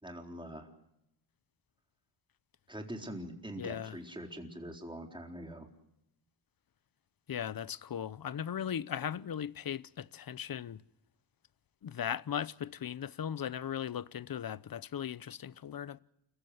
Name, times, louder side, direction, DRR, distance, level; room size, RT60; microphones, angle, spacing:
voice 1, 0.0-0.7 2.7-5.7, equal, 10° right, 4.0 m, -43 dB
voice 2, 3.6-4.0 7.3-10.8 11.8-16.0, left 9 dB, 45° left, 0.8 m, -38 dB
29.5 x 15.0 x 8.0 m
cardioid pair, 80°, 48 cm